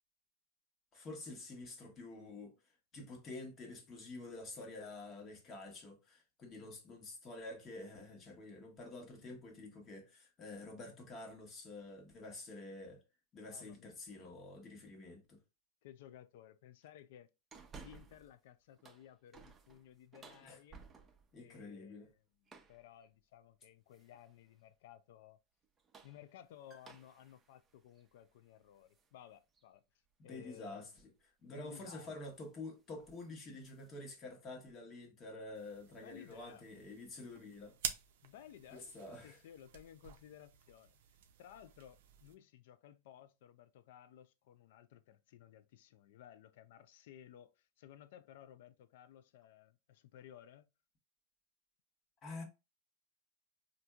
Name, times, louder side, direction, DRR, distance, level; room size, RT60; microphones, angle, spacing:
voice 1, 0.9-2.5 2.9-13.0 13.3-15.4 20.4-20.6 21.3-22.1 30.2-30.9 31.4-37.8 38.7-39.4 52.2-52.4, left 2 dB, 30° left, 1.2 m, -48 dB
voice 2, 13.5-13.9 15.8-17.3 17.7-20.8 21.4-25.4 26.0-29.8 30.2-30.9 31.5-32.1 36.0-36.7 38.2-41.0 41.4-50.7, left 11 dB, 70° left, 0.4 m, -57 dB
sound 1, 17.5-18.3 18.7-21.4 22.5-22.9 23.9-24.4 25.6-29.1 29.5-29.6 31.2-31.4 31.7-32.0 32.3-32.6 32.9-33.9, right 5 dB, 20° right, 0.6 m, -59 dB
sound 2, 35.5-42.3, right 9 dB, 75° right, 0.4 m, -49 dB
4.3 x 2.6 x 2.3 m
supercardioid pair, 120°, 0 cm